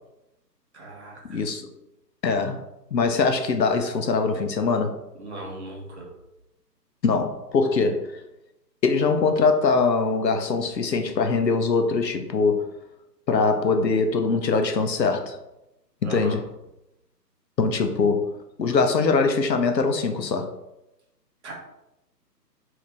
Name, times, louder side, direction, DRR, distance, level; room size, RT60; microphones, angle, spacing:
voice 1, 0.7-1.4 5.2-6.1 16.0-16.3 21.4-21.5, right 2 dB, 40° right, 0.9 m, -37 dB
voice 2, 1.3-1.7 2.2-2.6 2.9-5.0 7.0-8.1 8.8-12.6 13.3-15.4 16.0-16.5 17.6-18.3 18.6-20.5, left 4 dB, 80° left, 0.6 m, -22 dB
2.8 x 2.5 x 3.3 m
figure-of-eight pair, 140°, 50 cm